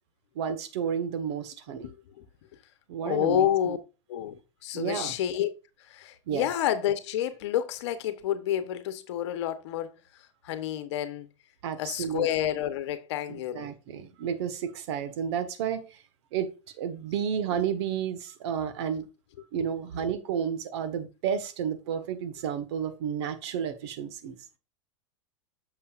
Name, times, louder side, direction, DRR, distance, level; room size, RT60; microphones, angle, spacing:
voice 1, 0.3-1.9 2.9-3.8 4.7-5.1 6.3-6.5 11.6-12.3 13.3-16.0 16.3-19.1 19.5-24.4, right 8 dB, 65° right, 1.5 m, -31 dB
voice 2, 3.0-3.8 4.1-5.5 5.8-9.9 10.4-11.3 11.8-13.7, left 11 dB, 65° left, 1.1 m, -29 dB
8.6 x 6.6 x 2.5 m
hypercardioid pair, 110°, 16 cm